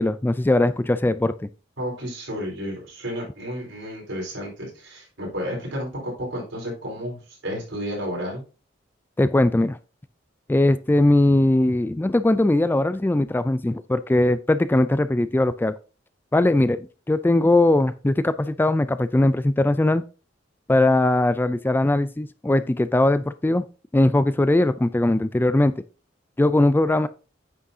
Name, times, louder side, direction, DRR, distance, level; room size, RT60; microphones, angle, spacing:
voice 1, 0.0-1.3 9.2-9.8 10.5-15.7 16.3-20.0 20.7-23.6 23.9-25.8 26.4-27.1, left 1 dB, 10° left, 0.3 m, -20 dB
voice 2, 1.8-8.4, equal, 80° right, 4.5 m, -32 dB
9.4 x 6.3 x 2.7 m
head